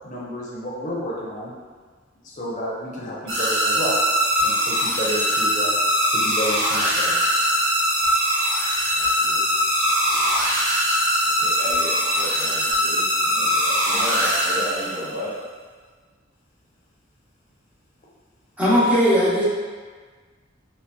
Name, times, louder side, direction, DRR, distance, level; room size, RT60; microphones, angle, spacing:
voice 1, 0.0-1.5 2.2-4.0 4.4-5.7 6.1-7.2 13.2-13.6, equal, 40° left, -5 dB, 0.6 m, -30 dB
sound 1, 3.3-15.1, equal, 75° right, 0.9 m, -21 dB
voice 2, 8.9-10.4 11.4-15.3, equal, 55° right, -11 dB, 1.1 m, -34 dB
voice 3, 18.6-19.5, equal, 5° right, -9 dB, 0.8 m, -18 dB
3.0 x 2.8 x 2.2 m, 1.5 s
head